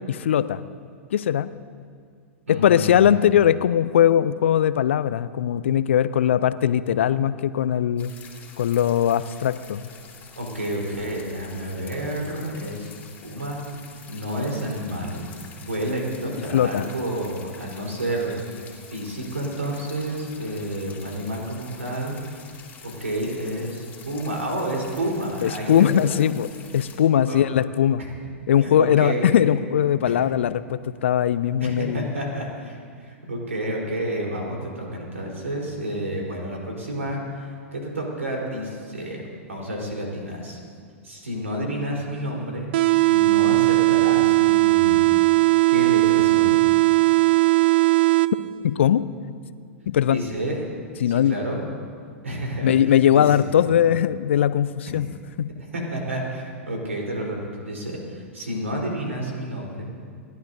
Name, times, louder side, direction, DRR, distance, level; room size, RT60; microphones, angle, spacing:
voice 1, 0.1-0.7 1.1-1.5 2.5-8.1 8.6-9.8 16.5-16.8 25.4-28.0 28.5-32.1 48.6-49.0 49.9-50.2 51.0-51.4 52.6-55.1 55.4-55.5, left 10 dB, 60° left, 16 dB, 0.5 m, -20 dB
voice 2, 2.5-3.2 10.4-12.9 13.2-13.6 14.1-15.3 15.6-18.6 18.9-22.2 22.8-26.2 27.2-27.4 28.6-29.5 30.0-30.2 31.6-39.2 39.5-40.6 41.0-42.7 43.1-45.0 45.7-46.6 50.1-50.7 51.1-51.6 52.2-53.6 55.7-59.9, right 1 dB, 75° right, -1 dB, 3.9 m, -30 dB
sound 1, 8.0-27.0, left 6 dB, 20° left, 2.9 m, -46 dB
sound 2, 42.7-48.7, right 21 dB, 50° right, 0.3 m, -18 dB
29.5 x 11.5 x 2.7 m, 2.1 s
figure-of-eight pair, 100°, 7 cm